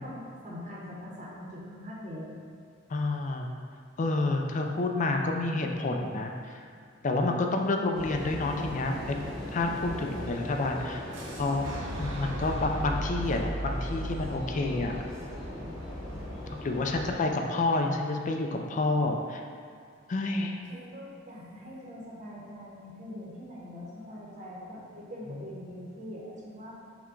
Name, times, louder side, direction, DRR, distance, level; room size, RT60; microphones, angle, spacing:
voice 1, 0.0-2.3 10.1-10.2 20.7-26.7, equal, 40° right, -6 dB, 0.8 m, -43 dB
voice 2, 2.9-3.5 4.0-6.6 7.0-9.2 9.5-11.0 11.4-11.7 12.0-15.0 16.1-19.4 20.1-20.6 25.3-25.5, left 2 dB, 40° left, 2 dB, 0.4 m, -29 dB
sound 1, 7.9-17.2, left 1 dB, 5° left, 1.0 m, -39 dB
Fire / Explosion, 11.1-17.0, equal, 70° right, 0.7 m, -38 dB
5.8 x 2.2 x 3.8 m, 2.3 s
head